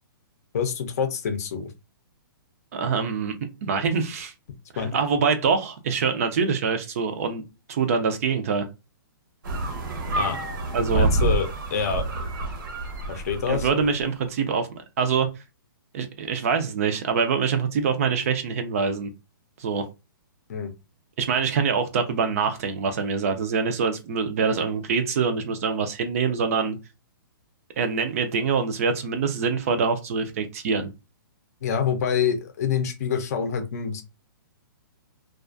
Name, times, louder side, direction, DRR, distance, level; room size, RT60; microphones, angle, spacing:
voice 1, 0.5-1.7 4.8-4.9 10.1-10.4 10.9-12.1 13.1-13.8 20.5-20.7 31.6-34.0, left 7 dB, 45° left, 6 dB, 0.5 m, -26 dB
voice 2, 2.7-3.3 3.6-4.3 4.7-7.4 7.7-8.7 10.7-11.1 13.5-14.7 15.0-15.3 15.9-19.1 19.6-19.9 21.2-26.8 27.8-30.9, right 5 dB, 40° right, 7 dB, 0.4 m, -24 dB
sound 1, 9.4-14.0, right 2 dB, 60° right, 0.8 m, -27 dB
2.3 x 2.3 x 2.4 m, 0.26 s
hypercardioid pair, 160°, 12 cm